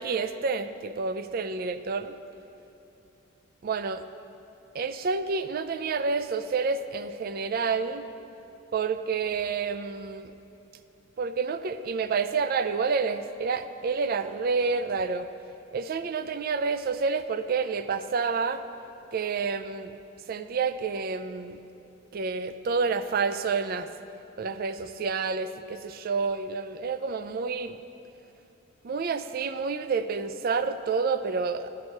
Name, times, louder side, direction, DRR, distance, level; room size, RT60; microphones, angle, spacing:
voice 1, 0.0-2.2 3.6-4.0 4.7-8.0 8.7-10.3 11.2-15.3 15.7-18.6 19.1-19.9 20.3-21.6 22.1-23.9 24.4-27.8 28.8-31.7, right 5 dB, 45° right, 11 dB, 0.3 m, -29 dB
10.5 x 4.8 x 6.3 m, 2.8 s
head